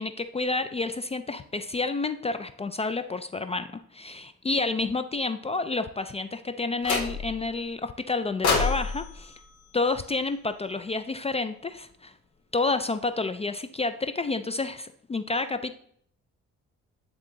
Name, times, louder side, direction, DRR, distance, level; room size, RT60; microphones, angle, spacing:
voice 1, 0.0-9.3 9.7-12.1 12.5-15.7, left 3 dB, 20° left, 10 dB, 0.3 m, -29 dB
sound 1, 6.8-7.5 8.4-10.7, left 4 dB, 75° left, 1.6 m, -29 dB
9.3 x 3.6 x 3.8 m, 0.64 s
cardioid pair, 90°, 30 cm